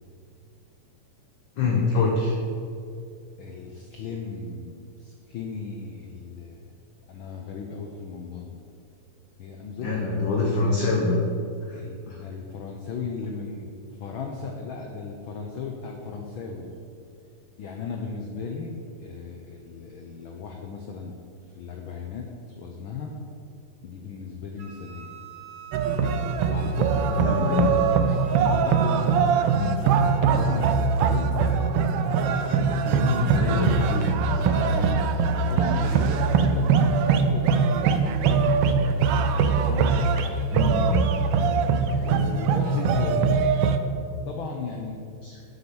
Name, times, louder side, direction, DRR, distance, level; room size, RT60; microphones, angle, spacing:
voice 1, 1.6-2.3 9.8-11.2 11.7-11.8 12.1-12.2 27.2-27.7 29.5-29.8 33.0-34.2 34.4-35.0 40.5-41.1 42.7-43.1 45.2-45.3, left 4 dB, 55° left, -2 dB, 1.4 m, -25 dB
voice 2, 3.4-6.7 7.1-8.6 9.4-10.2 11.7-16.8 17.6-18.7 19.0-21.2 21.4-23.1 23.8-25.1 26.5-27.7 28.0-29.4 29.9-31.7 32.2-33.1 35.5-40.4 41.9-43.5 44.2-45.0, left 5 dB, 85° left, 1 dB, 1.1 m, -36 dB
Wind instrument woodwind instrument, 24.6-29.2, right 6 dB, 55° right, 1.8 m, -47 dB
sound 1, 25.7-43.8, right 5 dB, 80° right, 1.3 m, -22 dB
7.9 x 7.4 x 7.0 m, 2.4 s
omnidirectional pair, 3.3 m